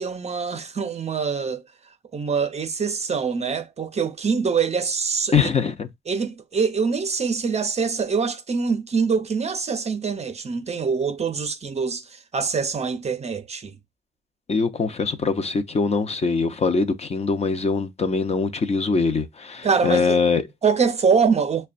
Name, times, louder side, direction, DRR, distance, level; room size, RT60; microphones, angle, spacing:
voice 1, 0.0-1.6 2.1-5.5 6.1-12.0 12.3-13.8 19.6-20.2 20.6-21.7, right 5 dB, 35° right, 0.6 m, -24 dB
voice 2, 5.3-5.9 14.5-20.4, left 4 dB, 30° left, 0.6 m, -22 dB
6.3 x 2.2 x 2.5 m
cardioid pair, 90°, 20 cm